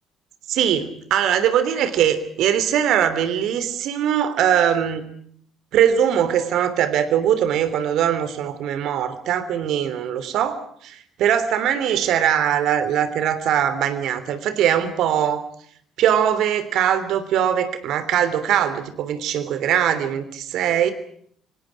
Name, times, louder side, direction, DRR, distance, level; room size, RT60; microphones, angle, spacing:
voice 1, 0.5-5.1 5.7-15.4 16.0-20.3 20.5-20.9, right 9 dB, 60° right, 12 dB, 3.2 m, -21 dB
29.0 x 25.5 x 4.8 m, 0.63 s
figure-of-eight pair, 45°, 0 cm